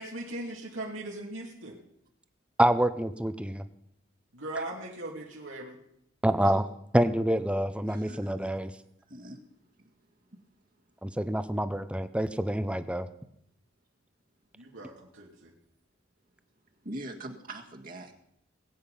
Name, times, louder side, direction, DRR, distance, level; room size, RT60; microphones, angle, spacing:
voice 1, 0.0-1.8 4.3-5.8 14.6-15.5, right 1 dB, 85° right, -2 dB, 2.7 m, -39 dB
voice 2, 2.6-3.6 6.2-6.6 6.9-8.7 11.0-13.1, right 1 dB, 5° right, 11 dB, 0.7 m, -27 dB
voice 3, 7.8-8.5 9.1-9.4 16.8-18.1, right 1 dB, 45° right, 2 dB, 1.7 m, -42 dB
20.5 x 8.8 x 5.6 m, 0.74 s
head